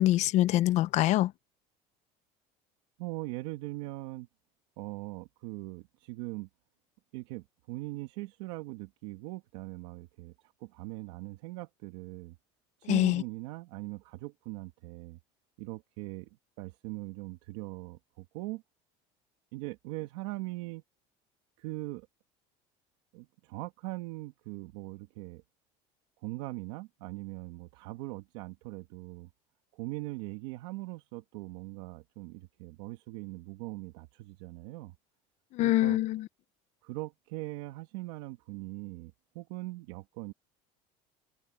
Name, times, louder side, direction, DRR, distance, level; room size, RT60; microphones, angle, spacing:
voice 1, 0.0-1.3 12.9-13.2 35.5-36.3, left 15 dB, 55° left, 0.7 m, -25 dB
voice 2, 3.0-4.3 4.8-6.5 7.1-12.4 12.8-15.2 15.6-18.6 19.5-20.8 21.6-22.1 23.1-25.4 26.2-29.3 29.7-34.9 35.6-36.0 36.8-40.3, right 20 dB, 85° right, 1.6 m, -41 dB
open air
cardioid pair, 130°, 14 cm